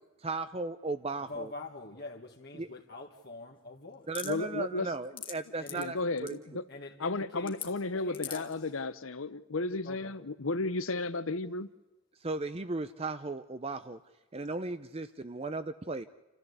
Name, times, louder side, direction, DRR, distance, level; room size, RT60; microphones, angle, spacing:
voice 1, 0.2-1.5 2.5-2.7 4.1-6.4 12.2-14.0 14.3-16.1, right 3 dB, 30° right, 11 dB, 0.6 m, -36 dB
voice 2, 1.3-4.1 5.6-5.9 6.7-7.6 8.0-8.7 9.8-10.1, left 2 dB, 50° left, 0 dB, 1.8 m, -44 dB
sound 1, 4.1-4.3 4.9-5.3 5.7-5.8 6.2-6.3 7.5-7.7 8.1-8.5, left 8 dB, 25° left, 1.8 m, -39 dB
voice 3, 4.2-4.9 5.7-6.6 7.0-11.7, left 3 dB, 90° left, 16 dB, 1.0 m, -33 dB
28.0 x 14.5 x 8.2 m, 1.1 s
head